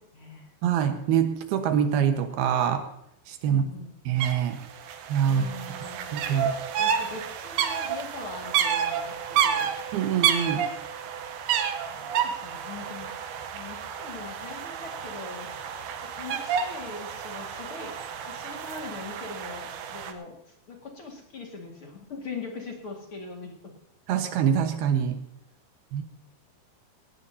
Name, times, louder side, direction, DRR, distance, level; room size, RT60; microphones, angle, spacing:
voice 1, 0.0-0.5 3.4-3.9 5.2-6.1 6.8-9.7 10.4-10.5 11.9-13.1 13.5-15.5 16.0-23.7, left 4 dB, 40° left, 0 dB, 2.4 m, -41 dB
voice 2, 0.6-2.9 3.3-3.6 4.1-4.6 5.1-5.4 6.1-6.5 9.9-10.6 24.1-25.2 25.9-26.0, right 8 dB, 90° right, 6 dB, 3.2 m, -24 dB
sound 1, 4.2-4.3 4.6-20.1, right 8 dB, 70° right, 2.3 m, -30 dB
18.5 x 18.0 x 2.8 m, 0.75 s
omnidirectional pair, 4.3 m